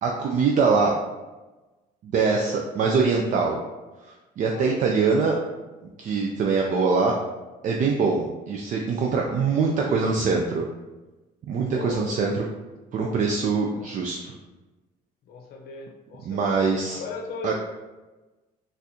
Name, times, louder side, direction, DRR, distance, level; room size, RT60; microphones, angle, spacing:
voice 1, 0.0-0.9 2.0-3.6 4.4-5.3 6.0-7.1 7.6-10.6 11.5-12.4 12.9-14.3 16.2-17.0 17.4-17.5, right 4 dB, 50° right, 0 dB, 0.4 m, -23 dB
voice 2, 4.5-4.8 7.9-8.1 11.7-12.2 12.9-13.2 13.7-13.9 15.3-16.6 16.9-17.5, left 3 dB, 70° left, 1 dB, 0.7 m, -37 dB
4.0 x 2.5 x 2.8 m, 1.1 s
cardioid pair, 110°, 17 cm